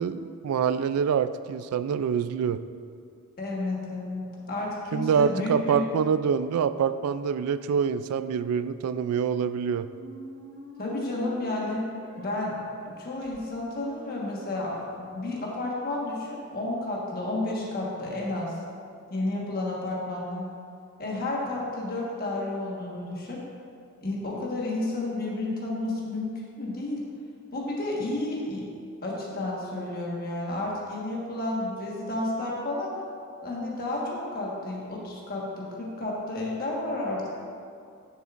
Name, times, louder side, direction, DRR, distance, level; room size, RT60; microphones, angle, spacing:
voice 1, 0.0-2.6 4.9-9.9, right 7 dB, 90° right, 16 dB, 0.3 m, -26 dB
voice 2, 3.4-5.8 10.8-11.8 12.2-12.6 12.9-18.5 19.1-20.4 21.0-23.4 24.0-27.0 27.5-28.7 29.0-32.9 33.4-37.3, left 2 dB, 45° left, -3 dB, 1.4 m, -31 dB
Squeak, 8.9-14.9, right 1 dB, 60° right, 1.0 m, -48 dB
10.5 x 6.7 x 2.5 m, 2.4 s
head